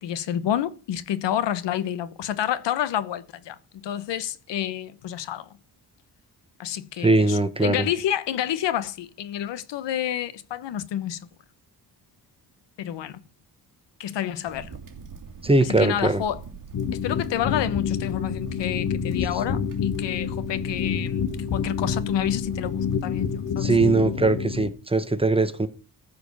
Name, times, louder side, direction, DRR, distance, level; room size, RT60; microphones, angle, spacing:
voice 1, 0.0-5.5 6.6-11.3 12.8-13.2 14.0-14.7 15.6-16.4 16.9-23.7, left 10 dB, 85° left, 1.0 m, -29 dB
voice 2, 7.0-7.8 15.4-16.2 23.6-25.7, right 2 dB, 15° right, 0.9 m, -21 dB
Crackle, 14.5-23.5, right 5 dB, 45° right, 2.6 m, -42 dB
sound 1, 16.7-24.7, left 7 dB, 55° left, 1.2 m, -28 dB
14.0 x 5.1 x 7.1 m
cardioid pair, 130°, 42 cm